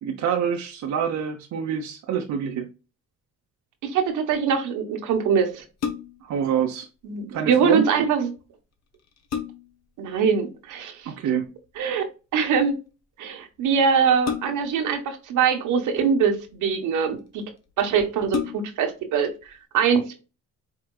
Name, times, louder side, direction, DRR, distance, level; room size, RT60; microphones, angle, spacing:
voice 1, 0.0-2.7 6.2-6.9 7.3-7.8 11.1-11.5, right 8 dB, 65° right, 0.8 m, -26 dB
voice 2, 3.8-5.6 7.0-8.3 10.0-11.1 11.8-12.1 12.3-12.8 13.2-17.4 17.8-19.3 19.7-20.2, right 6 dB, 85° right, 1.2 m, -23 dB
sound 1, 5.6-6.4 8.4-8.5 8.9-9.9 11.4-11.8 14.2-14.9 15.8-16.5 17.3-17.4 17.7-17.8 18.2-18.9 19.4-19.5, left 7 dB, 60° left, 1.0 m, -32 dB
4.9 x 3.7 x 2.3 m
cardioid pair, 90°, 30 cm